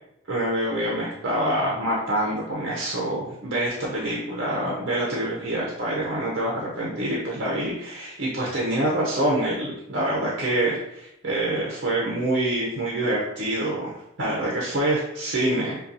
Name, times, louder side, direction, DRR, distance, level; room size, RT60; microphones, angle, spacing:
voice 1, 0.3-15.8, right 1 dB, 60° right, -4 dB, 0.7 m, -26 dB
5.4 x 2.3 x 2.6 m, 0.82 s
head